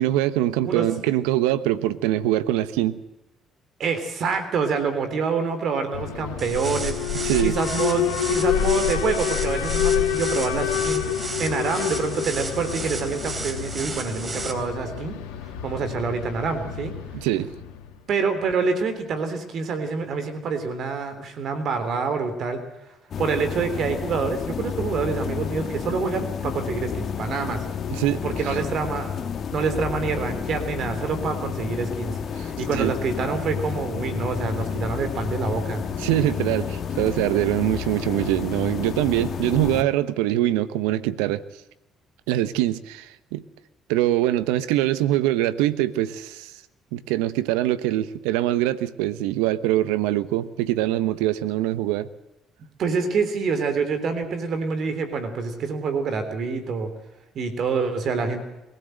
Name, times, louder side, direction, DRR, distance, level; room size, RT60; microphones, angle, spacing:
voice 1, 0.0-3.0 7.1-7.6 17.1-17.5 27.9-28.6 32.4-32.5 32.7-33.0 36.0-41.4 42.3-43.4 43.9-46.5 46.9-52.1, right 14 dB, 85° right, 14 dB, 1.0 m, -23 dB
voice 2, 3.8-11.1 11.4-15.2 15.6-16.9 18.1-22.6 23.2-27.6 28.2-29.2 29.5-35.8 52.8-56.9 57.3-58.4, right 5 dB, 60° right, 9 dB, 3.4 m, -26 dB
Alarm, 5.9-18.0, left 10 dB, 85° left, 2.3 m, -28 dB
sound 1, 6.4-14.5, right 3 dB, 30° right, 3.7 m, -34 dB
sound 2, 23.1-39.8, left 7 dB, 55° left, 1.7 m, -30 dB
23.0 x 16.5 x 7.9 m, 0.96 s
hypercardioid pair, 60°, 0 cm